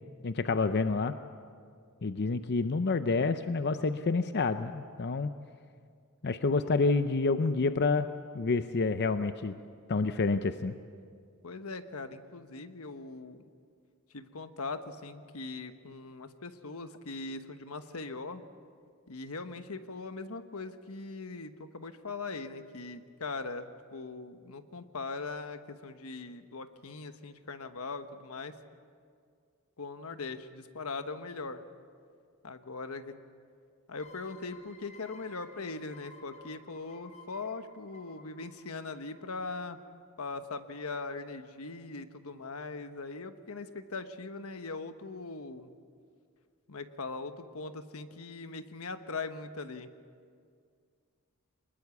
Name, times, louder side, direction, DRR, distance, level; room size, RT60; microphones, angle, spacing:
voice 1, 0.2-1.1 2.0-5.3 6.2-8.1 8.3-9.5 9.9-10.7, left 3 dB, 50° left, 10 dB, 0.6 m, -28 dB
voice 2, 11.4-13.4 14.1-18.4 19.1-28.5 29.8-31.6 32.4-33.1 33.9-39.8 40.2-45.7 46.7-49.9, left 3 dB, 85° left, 9 dB, 1.2 m, -40 dB
sound 1, 34.0-39.4, left 4 dB, 35° left, 4.6 m, -55 dB
24.0 x 20.5 x 7.1 m, 2.2 s
head